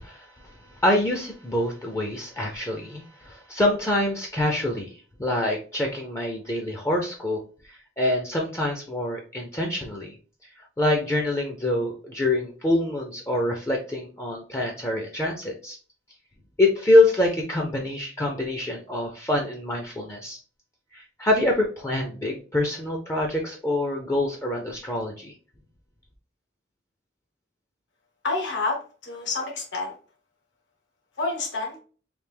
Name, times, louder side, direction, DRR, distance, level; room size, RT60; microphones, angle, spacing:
voice 1, 0.0-4.9 5.2-10.2 10.4-10.5 10.8-15.8 16.6-20.4 20.9-25.3, left 1 dB, 15° left, 1 dB, 0.4 m, -25 dB
voice 2, 28.2-29.9 31.2-31.8, left 3 dB, 75° left, 1 dB, 1.1 m, -28 dB
3.3 x 2.6 x 3.3 m, 0.39 s
head